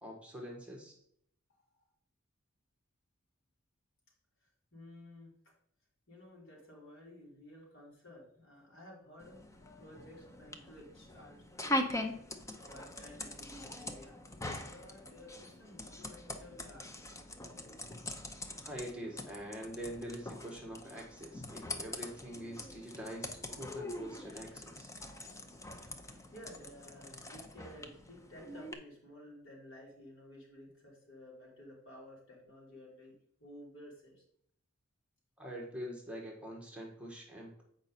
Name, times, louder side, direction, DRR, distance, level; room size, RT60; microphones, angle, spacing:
voice 1, 0.0-0.9 18.6-24.9 35.4-37.6, equal, 5° right, -1 dB, 1.4 m, -44 dB
voice 2, 1.5-1.9 4.4-5.3 6.1-9.4 9.8-12.1 12.6-14.2 14.5-16.9 26.3-33.1 33.4-34.2, left 1 dB, 65° left, -4 dB, 3.5 m, -54 dB
sound 1, 9.2-28.7, left 1 dB, 15° left, 0.7 m, -43 dB
7.8 x 5.2 x 4.2 m, 0.69 s
head